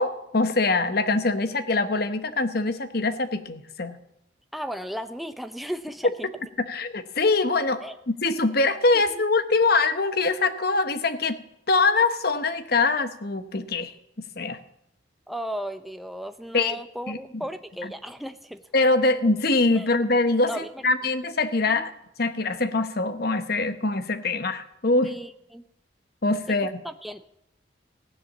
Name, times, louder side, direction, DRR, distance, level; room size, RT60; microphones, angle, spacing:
voice 1, 0.0-4.0 6.7-11.4 11.7-13.9 14.4-14.6 16.5-16.8 17.1-17.2 17.8-17.9 18.7-21.9 22.2-25.1 26.2-26.8, left 3 dB, 50° left, 10 dB, 1.0 m, -23 dB
voice 2, 4.5-6.1 7.8-8.0 8.9-9.3 15.3-18.6 19.7-19.9 20.4-20.8 21.7-21.8 25.0-25.6 26.5-26.6 26.8-27.2, equal, ahead, 8 dB, 0.6 m, -35 dB
15.5 x 10.0 x 7.2 m, 0.81 s
head